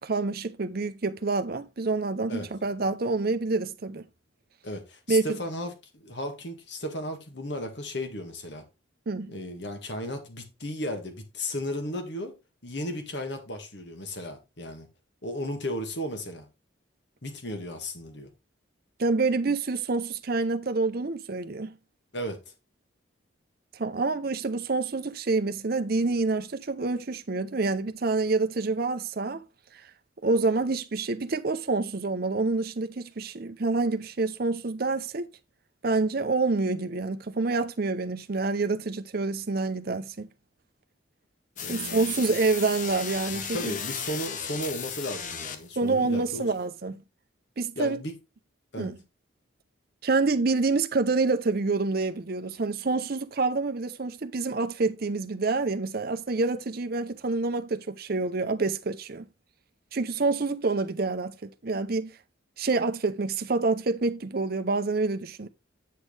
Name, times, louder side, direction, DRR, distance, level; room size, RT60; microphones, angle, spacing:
voice 1, 0.0-4.0 5.1-5.3 9.1-9.3 19.0-21.7 23.7-29.4 30.2-35.3 35.8-40.3 41.7-43.7 45.8-47.0 47.6-48.0 48.8-49.0 50.0-59.3 59.9-62.1 62.6-65.5, right 3 dB, 50° right, 0.6 m, -27 dB
voice 2, 4.6-8.6 9.3-12.4 12.6-14.9 15.2-16.5 17.2-18.3 22.1-22.4 41.6-42.3 43.3-46.5 47.8-48.1 48.7-48.9, left 1 dB, 60° left, 1.8 m, -35 dB
sound 1, 41.6-45.9, left 7 dB, 40° left, 0.9 m, -35 dB
8.5 x 6.3 x 3.3 m
head